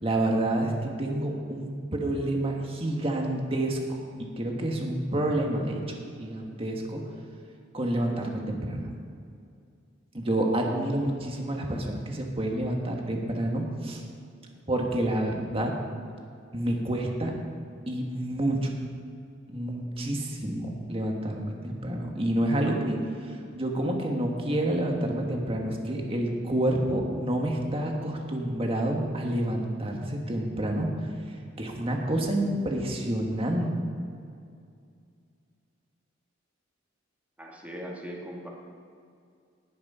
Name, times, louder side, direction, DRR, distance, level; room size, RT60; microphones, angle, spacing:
voice 1, 0.0-4.0 4.4-5.8 6.2-7.0 7.7-8.9 10.1-14.0 14.7-15.7 16.5-17.3 17.9-18.7 19.5-23.0 23.5-30.9 31.6-33.7, right 1 dB, 30° right, 1 dB, 1.7 m, -28 dB
voice 2, 37.4-38.5, equal, 10° right, -2 dB, 1.9 m, -39 dB
19.5 x 6.7 x 5.6 m, 2.4 s
head